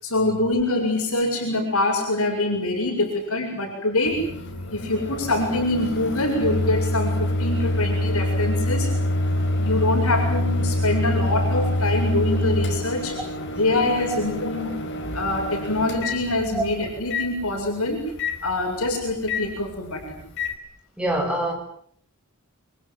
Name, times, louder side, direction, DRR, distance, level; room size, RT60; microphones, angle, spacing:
voice 1, 0.0-4.3 4.7-8.9 9.6-13.2 13.6-14.8 15.1-18.1 18.4-20.2, left 2 dB, 75° left, 1 dB, 7.5 m, -24 dB
Microwave oven, 4.0-20.5, left 1 dB, 55° left, 4.6 m, -26 dB
voice 2, 21.0-21.5, right 1 dB, 5° right, 0 dB, 7.3 m, -24 dB
29.0 x 25.0 x 7.6 m, 0.64 s
head